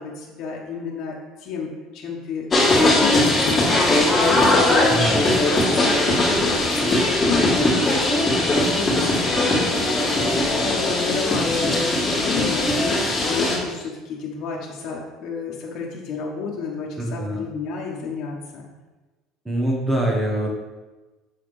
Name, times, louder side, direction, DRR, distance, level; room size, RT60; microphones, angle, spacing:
voice 1, 0.0-9.1 9.5-10.3 10.6-18.7, left 5 dB, 50° left, -3 dB, 1.1 m, -31 dB
sound 1, 2.5-13.6, left 2 dB, 20° left, 1.9 m, -19 dB
voice 2, 17.0-17.4 19.4-20.5, right 1 dB, 10° right, -1 dB, 1.1 m, -24 dB
6.5 x 4.1 x 4.8 m, 1.2 s
cardioid pair, 145°, 0 cm